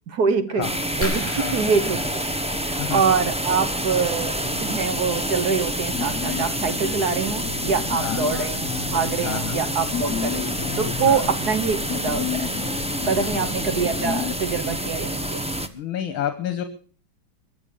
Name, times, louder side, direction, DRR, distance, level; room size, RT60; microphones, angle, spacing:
voice 1, 0.1-0.7 1.0-2.3 2.6-12.5 13.1-15.4, right 5 dB, 55° right, 10 dB, 1.7 m, -25 dB
sound 1, 0.6-15.7, right 1 dB, 10° right, 0.3 m, -28 dB
sound 2, 1.0-3.4 5.0-5.2 5.8-5.9 6.1-6.4, left 1 dB, 5° left, 5.4 m, -35 dB
sound 3, 5.9-14.3, left 9 dB, 55° left, 0.9 m, -32 dB
voice 2, 7.9-8.3 9.2-9.6 11.1-11.3 13.2-13.3 15.7-16.6, left 10 dB, 80° left, 9 dB, 1.9 m, -29 dB
22.5 x 7.7 x 6.8 m, 0.42 s
omnidirectional pair, 2.2 m